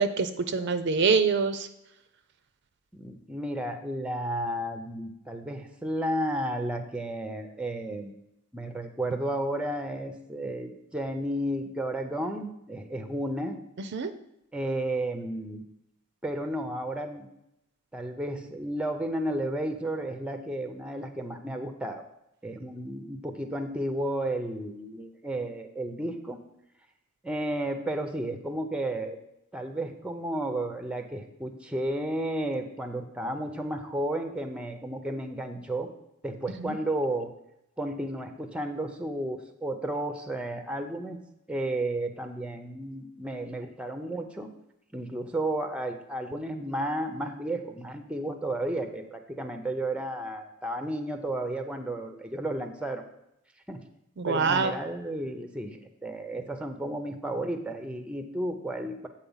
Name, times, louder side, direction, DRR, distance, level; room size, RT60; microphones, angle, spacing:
voice 1, 0.0-1.7 13.9-14.1 36.6-36.7 54.2-54.7, right 5 dB, 55° right, 10 dB, 0.5 m, -25 dB
voice 2, 2.9-8.1 8.5-13.6 14.5-15.6 16.2-17.3 17.9-22.0 22.4-26.4 27.2-29.2 29.5-35.9 36.2-37.3 37.8-41.2 41.5-44.5 44.9-53.0 53.7-53.8 54.2-59.1, right 1 dB, 5° right, 7 dB, 0.5 m, -32 dB
8.2 x 4.2 x 5.5 m, 0.83 s
head